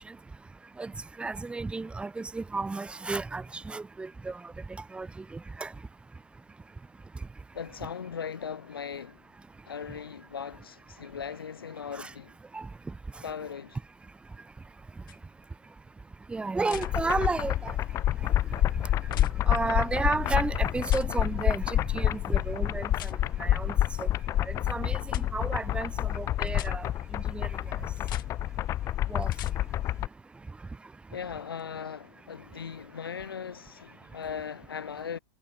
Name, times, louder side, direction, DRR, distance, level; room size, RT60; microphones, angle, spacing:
voice 1, 1.2-4.4 4.9-5.1 5.6-5.7 12.0-12.1 12.5-12.7 16.3-17.7 19.5-23.1 23.4-23.7 24.0-24.1 24.5-25.0 25.3-27.5 29.1-29.3, right 3 dB, 10° right, 1.1 m, -32 dB
voice 2, 7.5-9.2 9.6-12.3 13.2-13.8 31.1-35.2, left 7 dB, 85° left, 2.2 m, -38 dB
sound 1, 15.1-15.2 16.6-16.9 19.1-19.3 20.9-21.1 22.9-23.2 25.1-25.2 26.5-26.7 28.0-28.3 29.2-29.5 31.6-31.7, left 13 dB, 65° left, 1.4 m, -43 dB
sound 2, 16.7-30.1, left 13 dB, 25° left, 0.4 m, -28 dB
hypercardioid pair, 110°, 12 cm